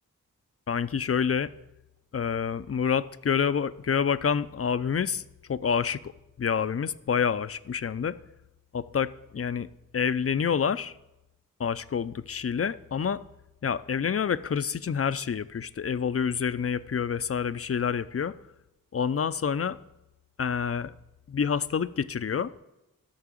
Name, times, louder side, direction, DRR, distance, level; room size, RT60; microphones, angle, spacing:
voice 1, 0.7-1.5 2.1-5.2 5.5-6.1 6.4-8.2 8.7-9.7 9.9-10.9 11.6-13.2 13.6-18.3 18.9-19.8 20.4-20.9 21.3-22.5, left 7 dB, 40° left, 15 dB, 0.5 m, -27 dB
13.0 x 5.9 x 7.5 m, 0.95 s
cardioid pair, 50°, 36 cm